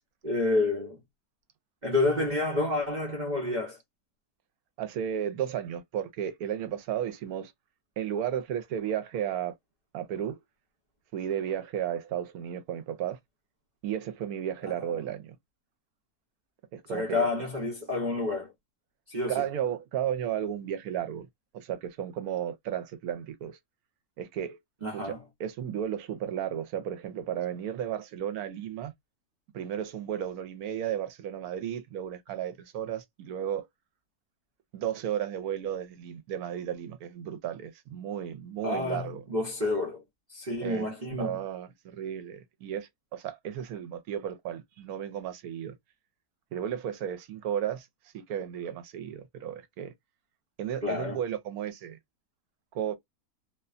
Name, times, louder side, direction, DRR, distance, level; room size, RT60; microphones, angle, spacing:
voice 1, 0.2-1.0 1.8-3.8 14.6-14.9 16.9-18.5 19.1-19.5 24.8-25.2 38.6-40.0 40.3-41.4 50.8-51.2, left 2 dB, 40° right, 0.7 m, -29 dB
voice 2, 4.8-7.5 8.0-9.5 9.9-10.4 11.1-13.2 13.8-15.4 16.7-17.3 19.3-21.3 21.5-23.6 24.2-24.6 24.9-25.1 25.4-28.9 29.5-33.7 34.7-39.2 40.6-40.9 41.2-45.8 46.5-47.9 48.1-49.9 50.6-52.0 52.7-53.0, right 9 dB, 80° right, 1.1 m, -34 dB
2.6 x 2.2 x 2.4 m
omnidirectional pair, 1.6 m